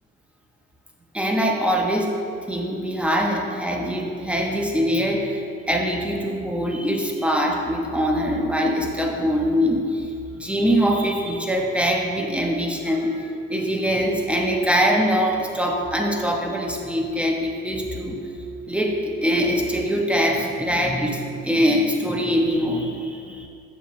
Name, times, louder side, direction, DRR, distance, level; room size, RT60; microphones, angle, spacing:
voice 1, 1.1-2.2 2.5-18.2 18.7-23.5, equal, 5° right, 0 dB, 1.1 m, -23 dB
7.6 x 6.8 x 3.3 m, 2.4 s
supercardioid pair, 75°, 31 cm